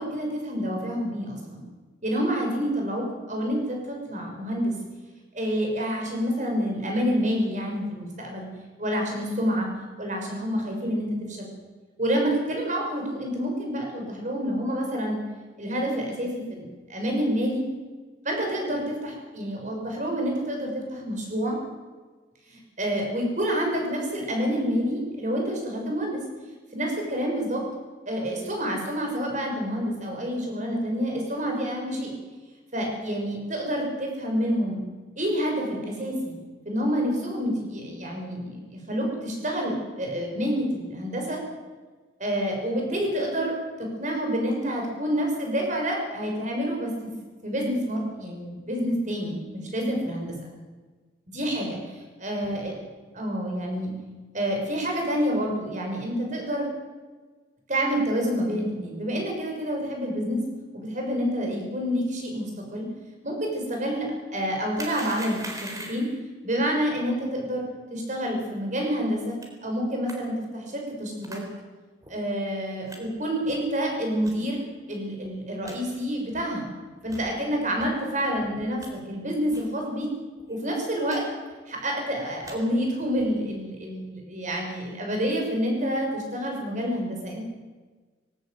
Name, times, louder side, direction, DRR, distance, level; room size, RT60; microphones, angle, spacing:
voice 1, 0.0-1.6 2.0-4.7 5.3-8.5 8.8-9.7 10.0-11.5 12.0-15.2 15.6-17.6 18.2-21.6 22.5-26.2 26.7-27.6 28.1-32.1 32.7-34.8 35.2-36.4 36.6-41.4 42.2-43.5 43.8-47.1 47.4-50.3 51.3-51.8 52.2-52.8 53.1-53.9 54.3-56.7 57.7-60.4 60.7-62.9 63.2-66.1 66.4-67.6 67.9-69.4 69.6-71.4 72.1-76.7 77.0-80.1 80.5-81.2 81.7-87.5, equal, 40° right, 1 dB, 6.7 m, -28 dB
sound 1, 64.7-66.2 69.4-69.5 70.1-70.2 71.2-71.4 72.0-72.1 72.9-73.0 73.5-73.7 74.2-74.3 74.9-75.0 75.2-75.3 75.6-75.8 76.3-76.4 77.0-77.3 77.8-77.9 78.4-78.9 79.5-79.7 80.0-80.1 80.4-80.6 81.1-81.2 81.4-81.8 82.2-82.6 83.1-83.4, right 1 dB, 20° right, 3.9 m, -41 dB
20.0 x 17.5 x 8.1 m, 1.4 s
head